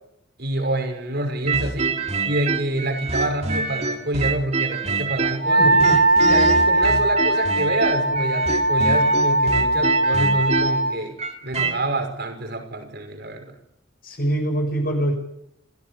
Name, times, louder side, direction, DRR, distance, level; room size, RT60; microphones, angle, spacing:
voice 1, 0.4-5.8 6.2-11.2 11.4-13.6, right 1 dB, 55° right, 6 dB, 5.7 m, -27 dB
sound 1, 1.5-5.5 5.8-11.8, right 3 dB, 30° right, 2.6 m, -26 dB
Wind instrument woodwind instrument, 5.4-11.0, right 1 dB, 70° right, 2.1 m, -19 dB
voice 2, 5.6-6.0 14.0-15.2, right 1 dB, 45° left, 4 dB, 6.6 m, -24 dB
28.0 x 17.0 x 8.7 m, 0.77 s
head